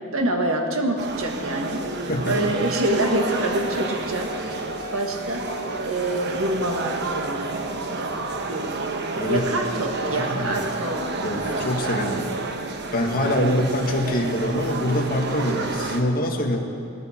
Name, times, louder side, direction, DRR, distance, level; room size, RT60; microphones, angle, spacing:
voice 1, 0.1-1.8 2.3-4.5 4.9-5.4 5.8-8.9 9.3-12.0 13.2-13.7, right 1 dB, 75° right, 1 dB, 1.7 m, -27 dB
sound 1, 1.0-16.0, right 3 dB, 55° right, 1.0 m, -30 dB
sound 2, 1.6-6.9, left 1 dB, 90° right, 3.3 m, -45 dB
voice 2, 2.1-2.5 9.2-9.5 10.1-10.5 11.2-12.2 12.9-16.6, left 1 dB, 45° left, 1 dB, 1.7 m, -24 dB
Wind instrument woodwind instrument, 3.0-8.6, left 1 dB, 85° left, 2.9 m, -41 dB
18.0 x 14.5 x 4.5 m, 2.5 s
head